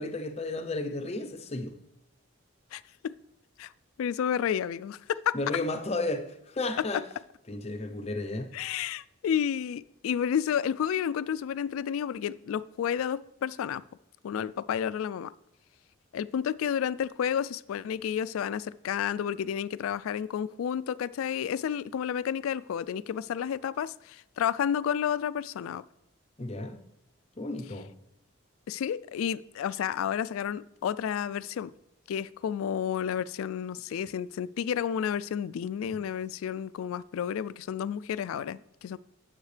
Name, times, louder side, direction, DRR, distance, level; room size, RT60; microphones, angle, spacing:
voice 1, 0.0-1.8 5.3-7.0 7.5-8.5 26.4-26.8 27.4-27.9, left 2 dB, 30° left, 0.6 m, -33 dB
voice 2, 2.7-3.1 3.6-3.7 4.0-5.4 8.5-13.8 14.2-15.3 16.1-25.8 28.7-31.7 32.1-39.0, left 8 dB, 85° left, 0.3 m, -31 dB
9.6 x 7.3 x 3.2 m
head